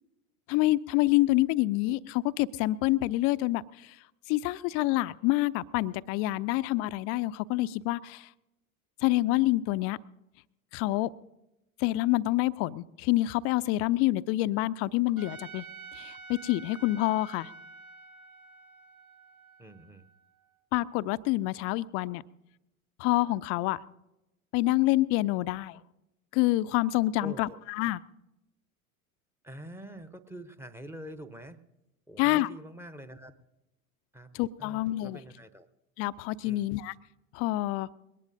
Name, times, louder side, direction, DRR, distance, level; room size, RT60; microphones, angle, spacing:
voice 1, 0.5-8.3 9.0-10.0 10.7-11.1 11.8-15.7 15.9-17.5 20.7-22.2 23.0-23.8 24.5-25.8 26.3-28.0 32.2-32.5 34.3-35.2 36.0-36.9 37.3-37.9, left 17 dB, 35° left, 16 dB, 0.4 m, -27 dB
Trumpet, 15.2-20.4, right 4 dB, 75° right, 1.3 m, -48 dB
voice 2, 19.6-20.1 27.2-27.6 29.4-31.6 32.1-33.3 34.1-34.3 34.6-35.7 36.4-36.7, right 1 dB, 5° right, 12 dB, 0.8 m, -45 dB
22.0 x 19.0 x 2.6 m, 0.94 s
figure-of-eight pair, 80°, 43 cm